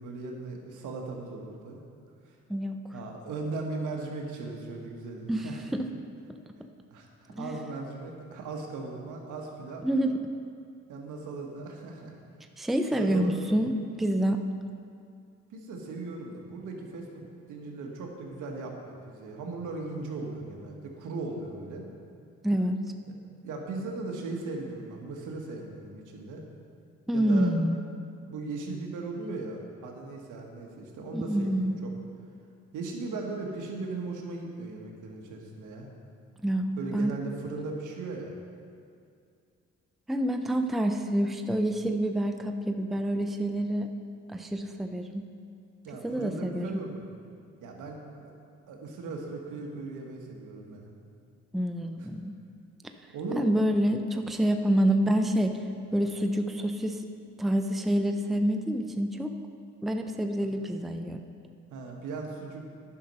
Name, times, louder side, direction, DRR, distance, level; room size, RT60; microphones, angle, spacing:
voice 1, 0.0-1.8 2.3-2.4 2.9-5.6 6.9-9.9 10.9-12.1 12.9-13.3 15.5-17.1 17.5-21.8 23.4-26.4 27.1-27.6 28.3-31.9 32.7-35.9 36.8-38.3 45.8-47.1 47.6-48.3 48.7-50.9 52.0-52.1 53.1-53.5 60.4-60.5 61.7-62.7, right 3 dB, 80° right, 1 dB, 1.5 m, -38 dB
voice 2, 5.3-5.9 7.3-7.5 9.8-10.2 12.6-14.4 22.4-22.8 27.1-27.8 31.1-31.8 36.4-37.1 40.1-43.9 44.3-45.2 46.0-46.8 51.5-52.4 53.4-55.6 55.9-57.0 57.4-59.3 59.8-61.2, right 1 dB, ahead, 6 dB, 0.5 m, -27 dB
10.0 x 5.9 x 5.4 m, 2.3 s
cardioid pair, 90°, 30 cm